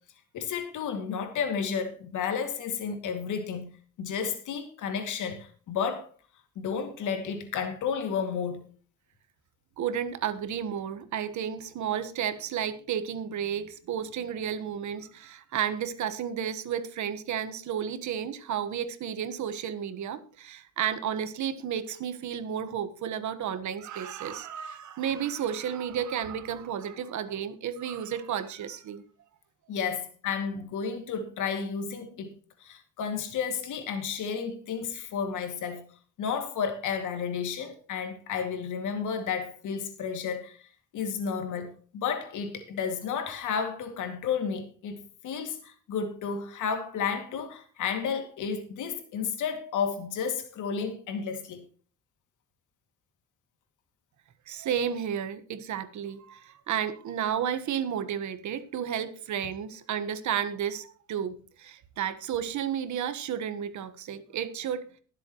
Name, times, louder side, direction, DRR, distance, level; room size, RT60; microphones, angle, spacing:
voice 1, 0.3-3.7 4.0-6.1 6.6-8.6 29.7-32.3 32.6-35.9 36.2-40.7 40.9-51.6, left 6 dB, 80° left, 2.5 m, -32 dB
voice 2, 9.8-29.0 54.5-64.8, right 9 dB, 70° right, 1.4 m, -32 dB
21.5 x 7.7 x 3.1 m
cardioid pair, 90°, 30 cm